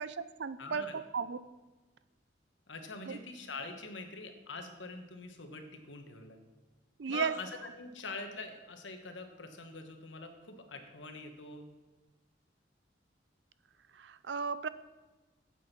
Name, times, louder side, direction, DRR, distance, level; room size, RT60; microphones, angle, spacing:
voice 1, 0.0-1.4 3.1-3.2 7.0-7.3 13.9-14.7, right 6 dB, 70° right, 15 dB, 0.5 m, -35 dB
voice 2, 0.6-1.0 2.7-6.4 7.1-11.7, left 3 dB, 80° left, 6 dB, 1.3 m, -44 dB
8.4 x 8.0 x 6.1 m, 1.1 s
head